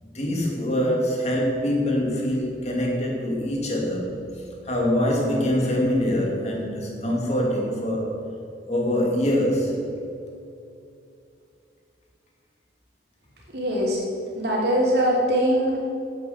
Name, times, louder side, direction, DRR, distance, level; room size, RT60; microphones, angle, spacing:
voice 1, 0.0-8.2 8.7-9.8, left 1 dB, 35° left, -1 dB, 2.4 m, -24 dB
voice 2, 13.5-14.0 14.3-15.8, equal, 60° right, -4 dB, 3.3 m, -22 dB
10.0 x 8.8 x 6.9 m, 2.6 s
head